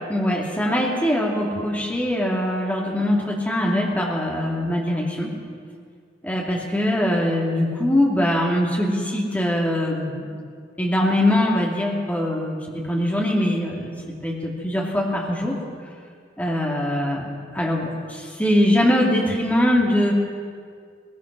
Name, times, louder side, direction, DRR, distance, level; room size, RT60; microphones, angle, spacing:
voice 1, 0.1-5.3 6.2-10.3 10.8-13.9 14.2-15.6 16.4-17.3 17.5-20.1, left 1 dB, 10° left, -2 dB, 2.7 m, -22 dB
21.0 x 20.0 x 6.2 m, 2.1 s
head